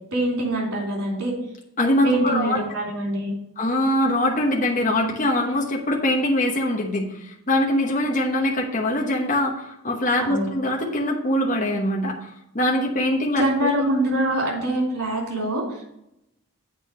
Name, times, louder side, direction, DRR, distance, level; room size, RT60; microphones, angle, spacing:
voice 1, 0.1-1.3 2.0-3.3 10.2-10.5 13.4-15.8, right 1 dB, 85° right, -2 dB, 3.5 m, -24 dB
voice 2, 1.8-2.6 3.6-13.4, left 1 dB, 35° left, 0 dB, 1.0 m, -23 dB
8.4 x 4.2 x 6.5 m, 0.82 s
head